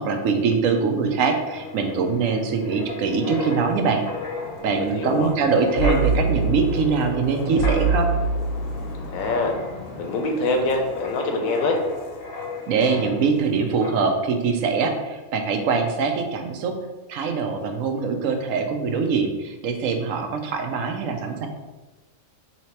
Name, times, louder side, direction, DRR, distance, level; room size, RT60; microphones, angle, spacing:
voice 1, 0.0-4.0 4.6-8.1 12.7-16.7 17.1-21.5, right 5 dB, 80° right, 5 dB, 1.0 m, -23 dB
Wind, 1.1-13.5 13.8-14.1, right 1 dB, 55° left, 0.8 m, -29 dB
voice 2, 4.8-5.4 9.1-9.5 10.0-11.8, left 2 dB, 90° left, 3 dB, 1.2 m, -24 dB
3.9 x 2.9 x 4.4 m, 1.2 s
omnidirectional pair, 1.4 m